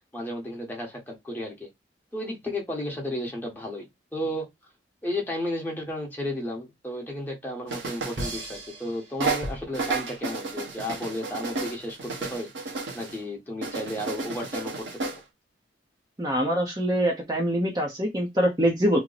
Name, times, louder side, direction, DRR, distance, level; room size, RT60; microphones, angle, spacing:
voice 1, 0.1-1.7 2.1-3.9 4.1-4.5 5.0-12.5 12.9-15.2, left 1 dB, 10° left, 1.0 m, -33 dB
sound 1, 7.7-8.9 9.2-13.2 13.6-15.2, right 3 dB, 85° right, 0.9 m, -32 dB
voice 2, 16.2-19.0, equal, 20° right, 0.6 m, -24 dB
2.9 x 2.0 x 3.9 m
head